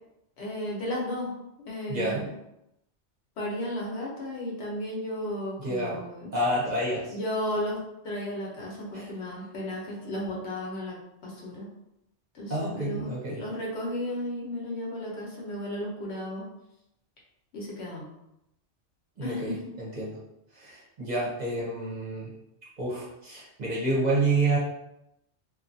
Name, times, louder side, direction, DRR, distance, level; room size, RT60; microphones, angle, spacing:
voice 1, 0.4-1.3 1.6-2.3 3.4-6.3 7.1-11.0 11.2-11.7 12.3-16.5 17.5-18.1 19.2-19.6, left 1 dB, 70° left, -3 dB, 1.0 m, -34 dB
voice 2, 1.9-2.3 5.6-6.0 6.3-7.2 8.9-9.1 12.5-13.4 19.2-20.2 20.5-22.3 22.8-24.6, right 2 dB, 45° right, -6 dB, 0.7 m, -29 dB
2.6 x 2.3 x 2.5 m, 0.84 s
omnidirectional pair, 1.2 m